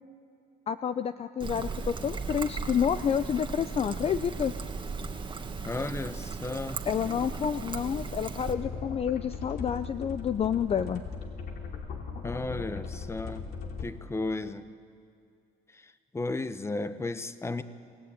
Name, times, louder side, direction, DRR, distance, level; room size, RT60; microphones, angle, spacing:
voice 1, 0.7-4.5 6.9-11.0, left 8 dB, 35° left, 11 dB, 0.6 m, -29 dB
Trickle dribble, 1.4-8.5, right 4 dB, 30° right, 1.8 m, -36 dB
voice 2, 5.6-6.8 12.2-13.5 13.8-14.7 15.7-17.6, left 2 dB, 15° left, 12 dB, 1.0 m, -34 dB
sound 1, 8.5-13.9, left 5 dB, 65° left, 3.0 m, -38 dB
27.0 x 18.0 x 8.9 m, 2.4 s
cardioid pair, 110°, 17 cm